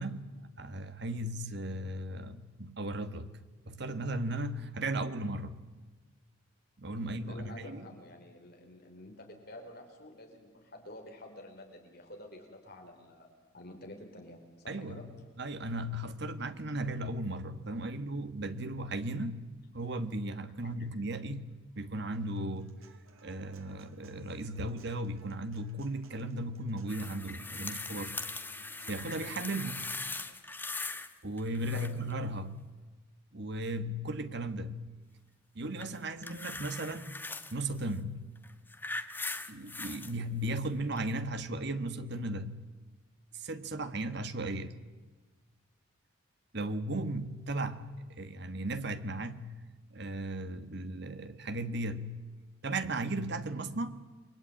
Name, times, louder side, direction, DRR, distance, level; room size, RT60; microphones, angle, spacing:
voice 1, 0.0-3.3 3.7-5.6 6.8-7.9 14.7-15.0 15.4-19.4 19.7-21.5 21.7-22.7 23.2-28.2 28.9-29.9 31.2-32.6 33.3-34.9 35.5-37.2 37.5-38.3 39.5-42.6 43.3-44.8 46.5-47.8 48.2-49.6 49.9-52.2 52.6-54.0, right 1 dB, 55° right, 1.5 m, -36 dB
voice 2, 6.9-15.1 31.7-32.0, left 1 dB, 50° left, 4.9 m, -49 dB
Human voice / Acoustic guitar, 22.3-30.3, right 2 dB, 90° right, 2.3 m, -60 dB
sound 1, 26.9-31.1 31.4-32.1 35.8-37.5 38.4-40.1 41.0-41.1, left 3 dB, 10° left, 1.1 m, -40 dB
29.0 x 22.5 x 9.0 m
head